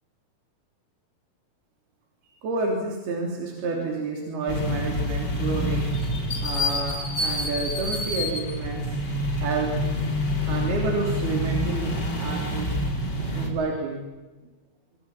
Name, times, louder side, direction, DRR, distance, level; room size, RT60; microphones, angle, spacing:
voice 1, 2.4-6.0 6.3-9.7 10.5-12.7 13.2-14.0, right 3 dB, 85° right, 1 dB, 5.4 m, -30 dB
sound 1, 4.5-13.5, left 1 dB, 25° left, 4.3 m, -27 dB
26.0 x 24.5 x 7.4 m, 1.1 s
omnidirectional pair, 4.4 m